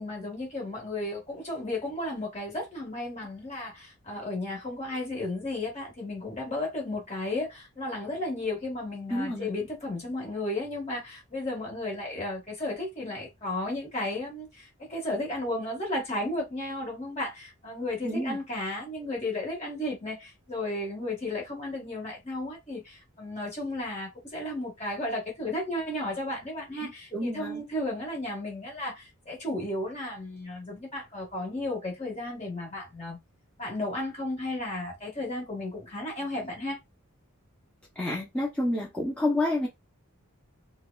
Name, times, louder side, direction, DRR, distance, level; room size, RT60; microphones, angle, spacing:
voice 1, 0.0-33.2 33.6-36.8, left 1 dB, 30° left, 1.6 m, -34 dB
voice 2, 9.1-9.5 18.0-18.4 26.8-27.6 38.0-39.7, left 1 dB, 5° left, 0.7 m, -29 dB
4.6 x 2.3 x 2.3 m
head